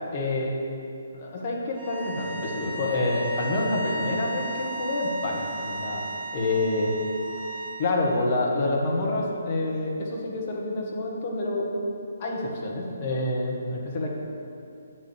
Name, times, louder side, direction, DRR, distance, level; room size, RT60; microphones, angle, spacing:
voice 1, 0.1-0.5 1.1-6.0 6.3-6.9 7.8-11.8 12.2-14.1, left 2 dB, 40° left, -2 dB, 1.5 m, -27 dB
sound 1, 1.7-7.8, right 2 dB, 40° right, 2.2 m, -35 dB
8.0 x 4.4 x 6.9 m, 2.6 s
figure-of-eight pair, 140°, 0 cm